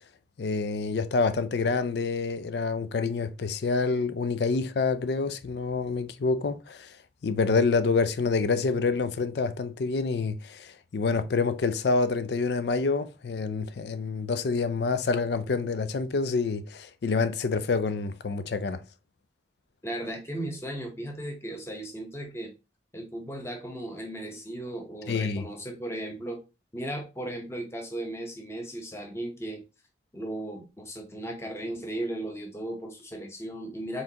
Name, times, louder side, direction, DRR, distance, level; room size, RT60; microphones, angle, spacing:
voice 1, 0.4-6.9 7.2-18.8 25.1-25.4, left 4 dB, 60° left, 0.4 m, -27 dB
voice 2, 19.8-22.5 22.9-26.4 26.7-29.6 30.1-34.0, right 1 dB, 15° left, 0.9 m, -36 dB
4.3 x 3.7 x 2.8 m
head